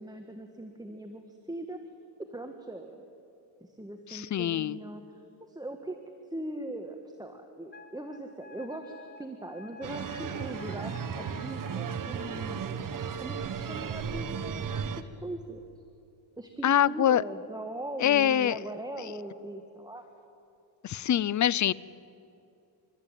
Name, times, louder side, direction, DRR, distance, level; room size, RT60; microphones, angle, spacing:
voice 1, 0.0-1.8 2.3-3.0 3.6-6.0 6.3-8.9 9.2-12.6 13.2-15.6 16.4-20.0, right 1 dB, 10° right, 5 dB, 1.7 m, -40 dB
voice 2, 4.1-4.8 16.6-17.2 18.0-18.6 20.8-21.7, left 10 dB, 40° left, 22 dB, 0.6 m, -24 dB
Wind instrument woodwind instrument, 7.7-12.4, left 3 dB, 20° left, 1.8 m, -50 dB
sound 1, 9.8-15.0, right 6 dB, 40° right, 1.3 m, -35 dB
30.0 x 14.0 x 9.1 m, 2.6 s
cardioid pair, 90°, 47 cm